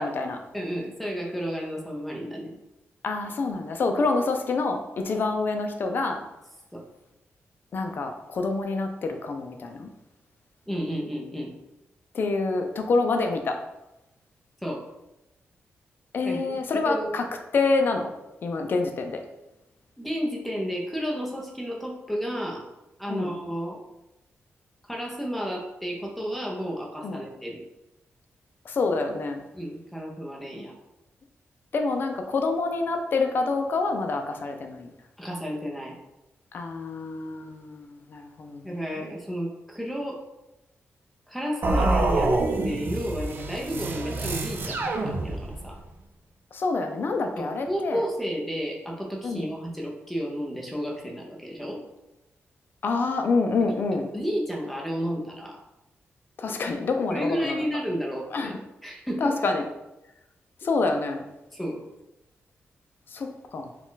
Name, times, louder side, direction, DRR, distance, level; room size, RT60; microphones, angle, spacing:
voice 1, 0.0-0.4 3.0-6.2 7.7-9.9 12.1-13.6 16.1-17.2 17.5-18.1 18.4-19.2 23.1-23.3 27.0-27.2 28.7-29.4 31.7-34.9 36.5-39.1 46.5-48.0 49.2-49.5 52.8-54.1 56.4-57.6 58.3-58.5 59.2-59.6 60.6-61.2 63.1-63.7, left 3 dB, 50° left, 4 dB, 0.5 m, -27 dB
voice 2, 0.5-2.5 6.7-6.8 10.7-11.5 14.6-14.9 16.2-16.4 16.8-17.1 20.0-22.7 23.0-23.8 24.9-27.6 29.5-30.7 35.2-36.0 38.6-40.2 41.3-42.3 42.6-45.8 47.4-51.8 54.1-55.6 57.1-58.5 58.8-59.4 61.5-61.8, equal, ahead, -1 dB, 0.7 m, -32 dB
sound 1, 41.6-45.7, right 2 dB, 50° right, 0.5 m, -26 dB
4.2 x 2.3 x 3.9 m, 0.94 s
wide cardioid pair, 150°, 5 cm